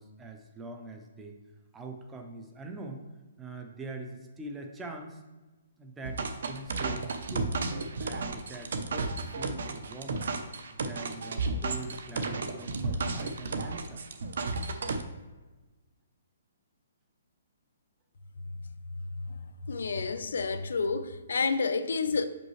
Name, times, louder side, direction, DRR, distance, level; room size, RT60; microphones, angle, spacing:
voice 1, 0.0-1.4 1.7-3.1 3.4-5.2 5.8-10.3 10.8-14.0, right 2 dB, 10° right, 0.4 m, -43 dB
sound 1, 6.0-15.0, right 3 dB, 60° right, 0.6 m, -33 dB
voice 2, 19.7-22.2, left 4 dB, 85° left, 0.6 m, -29 dB
6.2 x 5.2 x 3.2 m
hypercardioid pair, 175°, 0 cm